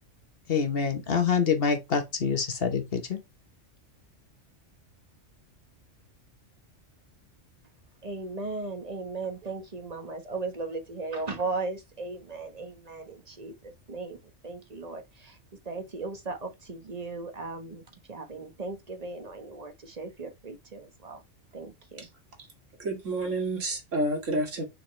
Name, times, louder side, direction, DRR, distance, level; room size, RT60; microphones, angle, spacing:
voice 1, 0.5-3.2, left 6 dB, 50° left, 1.3 m, -26 dB
voice 2, 8.0-14.2 14.4-15.4 15.6-21.2 21.5-22.1 22.4-22.5, right 3 dB, 35° right, 1.3 m, -37 dB
voice 3, 22.8-24.6, right 1 dB, 90° right, 2.4 m, -29 dB
6.5 x 4.8 x 3.2 m
omnidirectional pair, 1.3 m